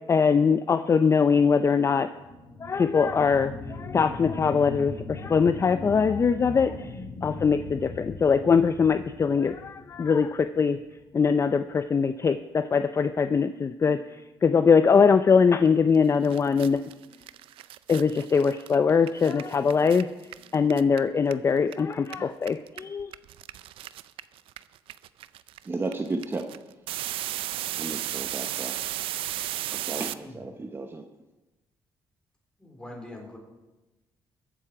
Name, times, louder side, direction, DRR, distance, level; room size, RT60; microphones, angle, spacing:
voice 1, 0.1-2.1 2.6-10.8 11.1-16.8 17.9-20.1 20.5-23.1, left 5 dB, 30° left, 11 dB, 0.5 m, -22 dB
sound 1, 2.1-11.1 11.6-11.7, left 3 dB, 75° left, 4.7 m, -39 dB
sound 2, 15.9-16.0 16.2-21.7 22.0-30.1, right 14 dB, 85° right, 0.4 m, -35 dB
voice 2, 25.7-26.5 27.8-28.8 29.7-31.0, right 3 dB, 25° right, 5 dB, 0.9 m, -33 dB
voice 3, 32.6-33.4, left 1 dB, 10° left, 0 dB, 3.9 m, -43 dB
22.0 x 7.5 x 4.9 m, 1.1 s
cardioid pair, 100°, 9 cm